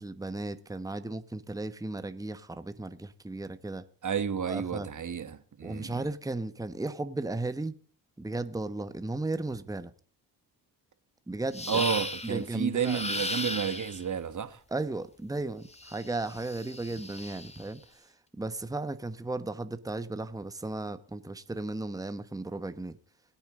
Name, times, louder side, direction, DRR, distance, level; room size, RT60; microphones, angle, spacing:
voice 1, 0.0-3.9 4.5-4.9 5.6-7.8 8.2-9.9 11.3-11.8 12.2-13.0 14.7-23.0, right 2 dB, 10° right, 1.1 m, -35 dB
voice 2, 4.0-6.1 11.7-14.6, right 7 dB, 40° right, 1.6 m, -31 dB
sound 1, 11.5-12.4 12.8-14.0 15.7-17.6, left 2 dB, 15° left, 1.9 m, -36 dB
22.0 x 8.7 x 3.8 m
supercardioid pair, 60°, 46 cm